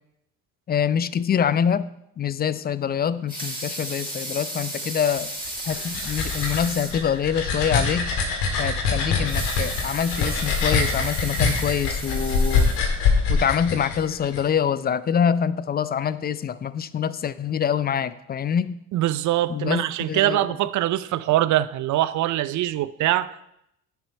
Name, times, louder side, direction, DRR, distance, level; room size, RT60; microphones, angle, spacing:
voice 1, 0.7-1.9 2.2-5.3 5.6-8.1 8.6-12.7 13.3-18.8 19.5-20.5, left 8 dB, 25° left, 0.4 m, -25 dB
Water tap faucet / Sink (filling or washing) / Liquid, 3.1-7.0 7.5-7.6 7.9-8.0 9.1-13.3 13.8-13.9, right 1 dB, 10° right, 3.4 m, -34 dB
sound 1, 5.4-14.4, left 4 dB, 70° left, 1.9 m, -24 dB
voice 2, 18.9-23.5, right 14 dB, 45° right, 0.5 m, -23 dB
9.5 x 6.9 x 4.4 m
hypercardioid pair, 60°, 42 cm